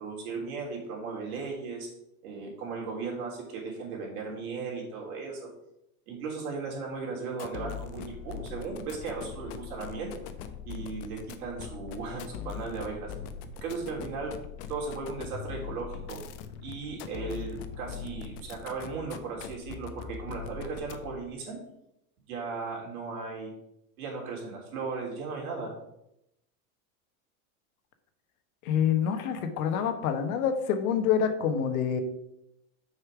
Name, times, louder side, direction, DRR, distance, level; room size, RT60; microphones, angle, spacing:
voice 1, 0.0-1.9 2.2-5.5 6.1-10.1 10.6-13.1 13.6-14.4 14.7-16.2 16.6-21.6 22.3-23.5 24.0-25.7, right 4 dB, 85° right, -2 dB, 3.3 m, -36 dB
sound 1, 7.3-21.3, left 8 dB, 55° left, 0.9 m, -41 dB
voice 2, 28.6-32.0, left 8 dB, 75° left, 7 dB, 1.3 m, -27 dB
6.8 x 5.6 x 4.8 m, 0.83 s
supercardioid pair, 130°, 42 cm